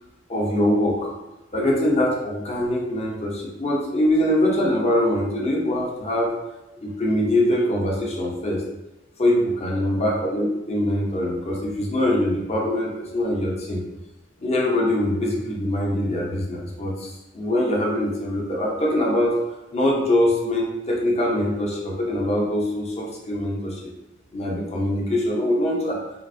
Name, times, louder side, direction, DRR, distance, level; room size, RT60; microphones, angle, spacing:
voice 1, 0.3-1.1 1.5-6.3 6.8-8.6 9.2-13.8 14.4-19.4 19.7-23.9 24.3-26.0, left 1 dB, 30° left, -2 dB, 0.6 m, -23 dB
3.4 x 2.4 x 2.5 m, 1.0 s
head